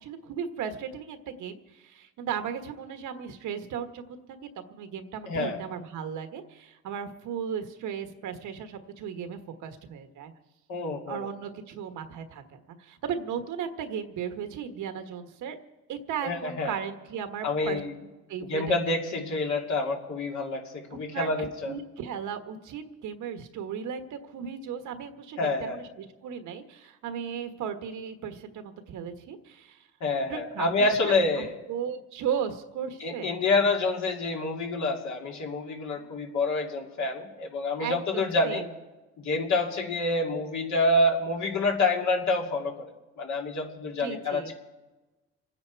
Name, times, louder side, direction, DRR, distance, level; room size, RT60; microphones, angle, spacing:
voice 1, 0.0-4.4 4.7-10.3 11.1-15.6 15.9-17.8 18.3-18.6 20.9-21.3 21.6-29.9 30.3-30.7 31.0-31.1 31.7-33.3 35.9-36.0 37.8-38.6 44.0-44.5, right 7 dB, 85° right, 7 dB, 1.4 m, -36 dB
voice 2, 5.3-5.6 10.7-11.3 16.2-16.7 17.4-17.9 18.5-21.8 25.4-25.8 30.0-31.6 33.0-38.6 39.2-44.5, left 2 dB, 70° left, 1 dB, 2.7 m, -27 dB
27.5 x 9.7 x 4.6 m, 1.1 s
cardioid pair, 90°, 30 cm